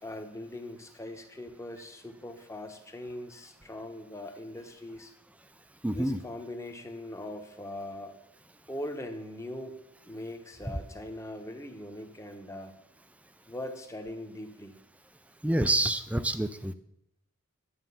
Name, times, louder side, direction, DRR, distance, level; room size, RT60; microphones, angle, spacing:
voice 1, 0.0-5.1 5.9-8.2 8.7-9.8 10.1-12.7 13.5-14.8, left 1 dB, 15° left, 5 dB, 1.1 m, -41 dB
voice 2, 5.8-6.2 15.4-16.7, right 1 dB, 5° right, 12 dB, 0.5 m, -27 dB
11.5 x 8.9 x 5.6 m, 0.74 s
head